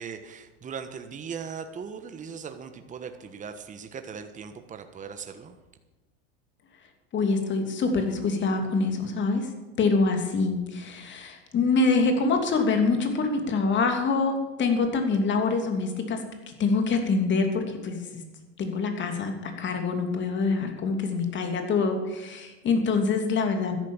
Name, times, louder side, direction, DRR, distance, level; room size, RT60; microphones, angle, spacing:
voice 1, 0.0-5.6, right 6 dB, 25° right, 7 dB, 1.3 m, -39 dB
voice 2, 7.1-9.5 9.8-16.2 16.5-18.2 18.6-23.8, left 4 dB, 35° left, 5 dB, 2.8 m, -25 dB
13.0 x 11.0 x 7.3 m, 1.1 s
supercardioid pair, 115°, 32 cm